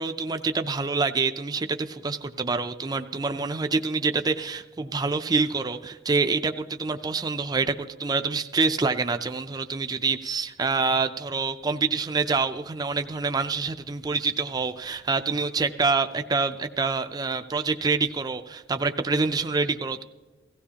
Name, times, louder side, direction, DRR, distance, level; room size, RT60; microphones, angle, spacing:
voice 1, 0.0-20.0, right 4 dB, 20° right, 8 dB, 0.4 m, -26 dB
17.0 x 15.5 x 2.8 m, 1.2 s
head